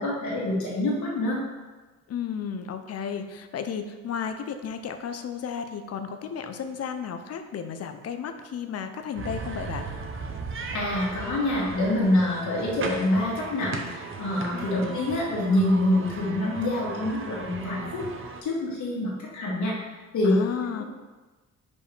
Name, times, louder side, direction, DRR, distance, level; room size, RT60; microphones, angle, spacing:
voice 1, 0.0-1.4 10.7-18.0 18.4-19.8 20.1-20.4 20.8-20.9, left 1 dB, 70° left, -4 dB, 2.2 m, -26 dB
voice 2, 2.1-9.9 14.5-14.9 20.2-20.8, left 7 dB, 55° left, 8 dB, 0.7 m, -33 dB
sound 1, 9.2-18.4, right 4 dB, 45° right, 0.9 m, -37 dB
5.3 x 4.7 x 4.9 m, 1.2 s
cardioid pair, 90°, 30 cm